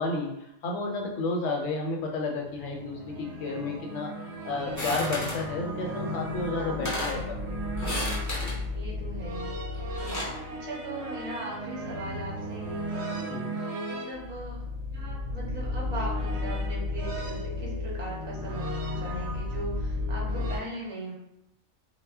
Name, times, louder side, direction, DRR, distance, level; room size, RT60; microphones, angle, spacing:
voice 1, 0.0-7.4 8.3-8.5 10.2-10.4 13.3-13.6, left 3 dB, 75° left, 1 dB, 0.9 m, -32 dB
sound 1, 2.3-20.6, left 1 dB, 65° right, 0.8 m, -34 dB
sound 2, 4.8-5.5 6.4-6.5 6.7-7.2 7.8-8.6 9.7-10.4, left 1 dB, 20° left, 0.4 m, -33 dB
voice 2, 6.5-7.4 8.7-9.5 9.9-10.2 10.5-14.6 14.9-21.1, right 1 dB, 35° right, -4 dB, 0.5 m, -39 dB
2.1 x 2.1 x 3.4 m, 0.81 s
omnidirectional pair, 1.3 m